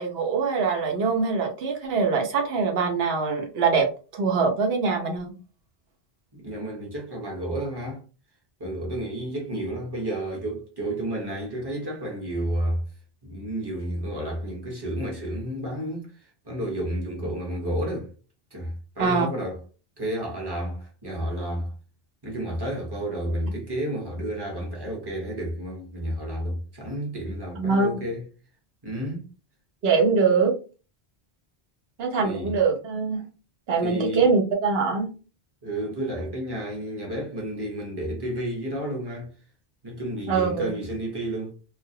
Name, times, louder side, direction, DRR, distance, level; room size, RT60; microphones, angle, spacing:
voice 1, 0.0-3.9 4.1-5.3 19.0-19.3 27.6-28.0 29.8-30.5 32.0-33.2 33.7-35.1 40.3-40.7, right 5 dB, 75° right, 0.9 m, -23 dB
voice 2, 6.3-8.0 8.6-12.8 13.2-18.1 18.5-19.6 20.0-21.7 22.2-28.3 28.8-29.3 32.2-32.6 33.8-34.3 35.6-39.3 39.8-41.5, right 1 dB, 25° right, 0.8 m, -31 dB
2.3 x 2.0 x 2.6 m
omnidirectional pair, 1.1 m